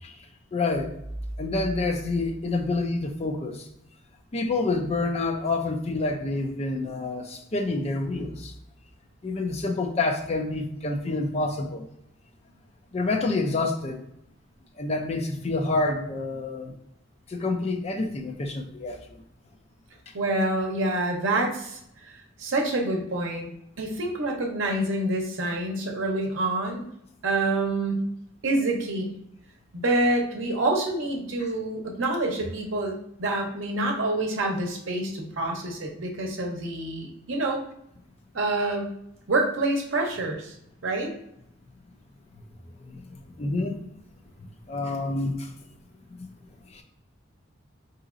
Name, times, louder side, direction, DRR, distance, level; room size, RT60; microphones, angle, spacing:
voice 1, 0.5-1.0 1.4-3.7 4.3-8.5 9.2-11.9 12.9-14.0 14.8-16.7 17.3-19.2 31.4-31.5 42.8-43.8 44.7-45.5 46.1-46.3 46.7-46.8, left 3 dB, 30° left, 4 dB, 0.4 m, -28 dB
sound 1, 0.7-3.4, right 1 dB, 10° right, 1.4 m, -39 dB
voice 2, 20.1-23.5 23.8-26.8 27.2-28.0 28.4-29.1 29.7-37.6 38.3-38.9 39.3-40.5 40.8-41.1, right 2 dB, 70° right, 1 dB, 0.7 m, -27 dB
3.9 x 2.8 x 2.5 m, 0.76 s
head